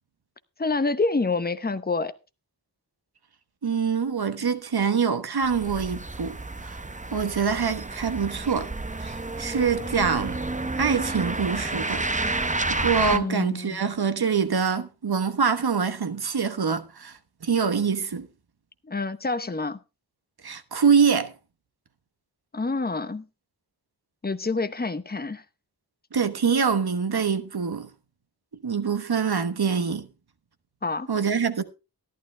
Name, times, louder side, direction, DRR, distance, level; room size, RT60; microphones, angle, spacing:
voice 1, 0.6-2.1 13.1-13.9 18.9-19.8 22.5-23.2 24.2-25.4 30.8-31.1, left 3 dB, 25° left, 0.9 m, -27 dB
voice 2, 3.6-6.8 7.1-8.7 9.0-10.4 10.8-12.4 12.7-18.3 20.4-21.3 26.1-27.9 28.6-30.1 31.1-31.6, right 6 dB, 65° right, 1.2 m, -25 dB
sound 1, 5.4-13.2, right 2 dB, 20° right, 0.8 m, -30 dB
14.0 x 11.5 x 3.3 m
wide cardioid pair, 75°, 41 cm